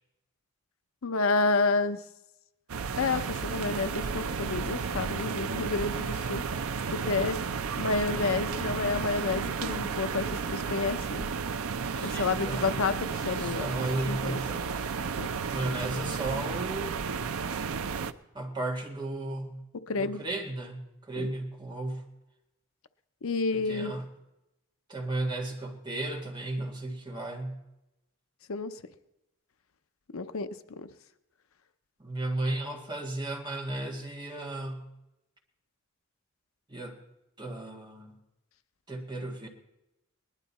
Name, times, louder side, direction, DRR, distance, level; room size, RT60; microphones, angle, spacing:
voice 1, 1.0-2.0 3.0-6.4 6.9-7.4 7.8-11.3 12.0-13.7 14.1-14.4 15.2-15.3 19.9-20.2 21.2-21.3 23.2-23.9 28.5-28.7 30.1-30.9, left 3 dB, 80° left, 11 dB, 0.7 m, -30 dB
sound 1, 2.7-18.1, right 5 dB, 90° right, 0.6 m, -33 dB
voice 2, 11.9-12.8 13.4-14.9 15.4-17.0 18.3-19.7 19.9-22.0 23.5-24.1 24.9-27.6 32.0-34.8 36.7-37.0 37.4-38.2 38.9-39.5, right 2 dB, 20° right, 1 dB, 1.8 m, -34 dB
19.5 x 11.5 x 4.2 m, 0.92 s
head